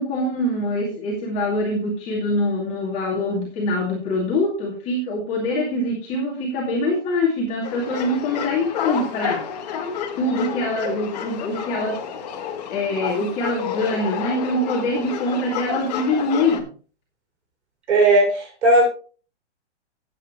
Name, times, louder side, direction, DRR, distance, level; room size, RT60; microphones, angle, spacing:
voice 1, 0.0-9.4 10.2-12.0 12.7-16.7, left 1 dB, 20° left, -4 dB, 2.5 m, -24 dB
sound 1, 7.6-16.6, left 8 dB, 35° left, 1.8 m, -30 dB
voice 2, 17.9-18.9, right 2 dB, 75° right, 1 dB, 6.4 m, -16 dB
13.0 x 9.0 x 3.1 m, 0.39 s
hypercardioid pair, 170°, 35 cm